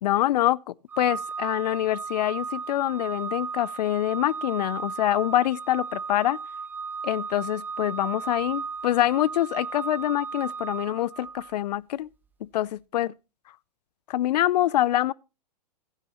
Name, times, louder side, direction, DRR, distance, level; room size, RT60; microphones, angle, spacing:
voice 1, 0.0-6.4 7.0-12.1 12.5-13.1 14.1-15.1, left 13 dB, 75° left, 0.4 m, -25 dB
Organ, 0.9-11.7, right 5 dB, 10° right, 0.5 m, -35 dB
15.0 x 9.5 x 2.9 m
hypercardioid pair, 150°, 21 cm